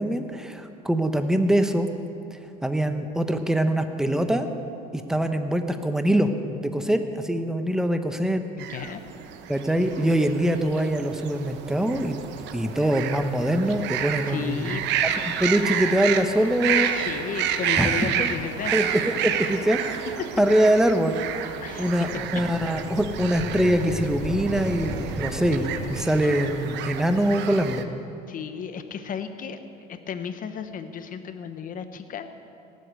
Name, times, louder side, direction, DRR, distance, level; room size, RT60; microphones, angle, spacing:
voice 1, 0.0-1.9 2.6-4.5 4.9-6.4 6.6-8.5 9.5-12.2 12.5-14.7 15.0-15.1 15.4-16.9 17.8-17.9 18.2-18.3 18.7-20.1 20.4-21.2 21.8-27.9, right 1 dB, 5° right, 7 dB, 1.0 m, -23 dB
voice 2, 8.6-9.0 14.3-15.1 16.9-18.7 20.2-20.3 21.6-22.1 28.3-29.6 29.9-32.3, left 7 dB, 45° left, 9 dB, 1.2 m, -34 dB
sound 1, 8.6-27.8, right 9 dB, 65° right, 1.0 m, -30 dB
sound 2, 21.9-26.8, left 1 dB, 15° left, 3.6 m, -35 dB
17.5 x 8.2 x 7.8 m, 2.7 s
supercardioid pair, 105°, 20 cm